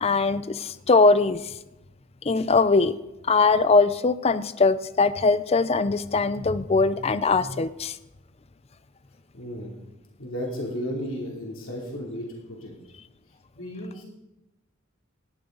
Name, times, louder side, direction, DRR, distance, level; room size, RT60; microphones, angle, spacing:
voice 1, 0.0-1.4 2.2-2.9 3.3-8.0, left 3 dB, 30° left, 15 dB, 0.5 m, -21 dB
voice 2, 9.3-9.8 10.2-12.7 13.6-14.0, equal, 75° left, -1 dB, 2.9 m, -34 dB
17.5 x 13.0 x 3.9 m, 0.96 s
head